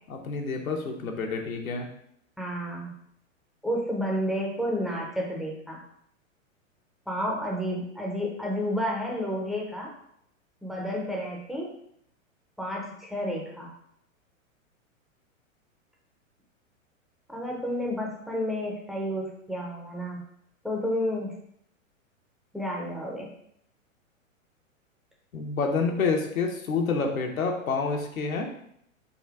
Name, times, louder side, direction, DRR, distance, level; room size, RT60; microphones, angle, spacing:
voice 1, 0.1-1.9 25.3-28.5, left 4 dB, 85° left, 2 dB, 1.0 m, -28 dB
voice 2, 2.4-2.9 3.6-5.8 7.1-9.9 10.6-11.7 12.6-13.7 17.3-20.2 20.6-21.3 22.5-23.3, equal, ahead, -3 dB, 0.4 m, -31 dB
4.0 x 2.5 x 4.6 m, 0.72 s
hypercardioid pair, 120°, 41 cm